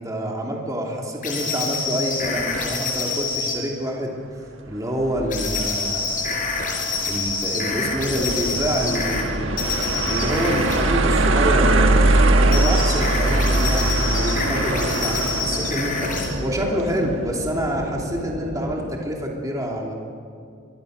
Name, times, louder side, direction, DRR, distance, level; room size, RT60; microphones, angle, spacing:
voice 1, 0.0-4.1 4.7-6.0 7.0-9.8 10.1-11.9 12.3-19.9, equal, 15° right, -1 dB, 3.0 m, -27 dB
sound 1, 1.2-3.6 5.3-9.2 9.6-10.8 12.5-16.3, left 4 dB, 40° left, 4.6 m, -27 dB
sound 2, 5.0-17.2, right 2 dB, 60° right, 1.3 m, -22 dB
sound 3, 7.8-18.9, equal, 40° right, 3.9 m, -33 dB
24.5 x 23.5 x 6.6 m, 2.3 s
head